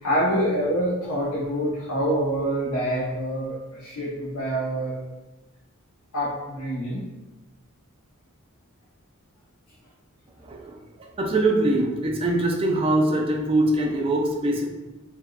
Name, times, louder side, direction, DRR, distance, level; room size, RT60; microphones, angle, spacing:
voice 1, 0.0-5.0 6.1-7.0, right 1 dB, 85° left, -6 dB, 0.7 m, -26 dB
voice 2, 10.4-14.7, right 1 dB, 25° right, 1 dB, 0.3 m, -23 dB
4.4 x 2.1 x 2.2 m, 1.1 s
head